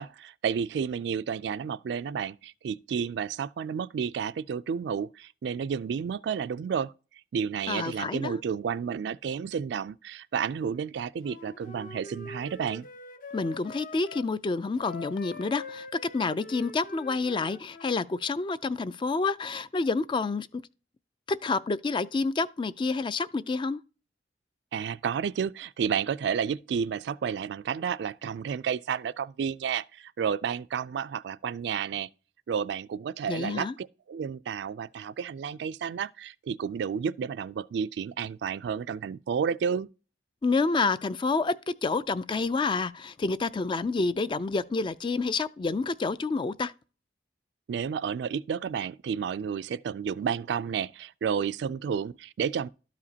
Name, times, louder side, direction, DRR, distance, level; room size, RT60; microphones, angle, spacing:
voice 1, 0.0-6.9 7.3-12.9 24.7-32.1 32.5-39.9 47.7-52.7, right 7 dB, 65° right, 0.3 m, -31 dB
voice 2, 7.7-8.4 13.3-15.9 16.1-20.6 21.3-23.8 33.3-33.7 40.4-46.7, left 3 dB, 25° left, 0.3 m, -28 dB
Wind instrument woodwind instrument, 11.2-14.3 14.8-18.0, left 3 dB, 50° left, 0.7 m, -44 dB
12.5 x 5.0 x 2.8 m
head